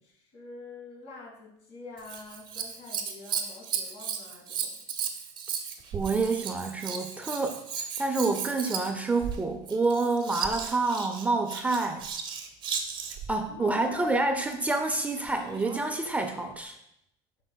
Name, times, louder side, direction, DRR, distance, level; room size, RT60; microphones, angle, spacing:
voice 1, 0.0-4.8 13.5-14.4, left 3 dB, 60° left, -1 dB, 2.0 m, -46 dB
Scissors, 2.0-13.3 15.3-15.9 16.6-16.7, right 7 dB, 35° right, 0.8 m, -35 dB
voice 2, 5.9-7.6 8.0-12.0 13.3-16.8, right 3 dB, 10° right, 4 dB, 0.4 m, -28 dB
7.8 x 5.4 x 2.2 m, 0.79 s
supercardioid pair, 130°, 13 cm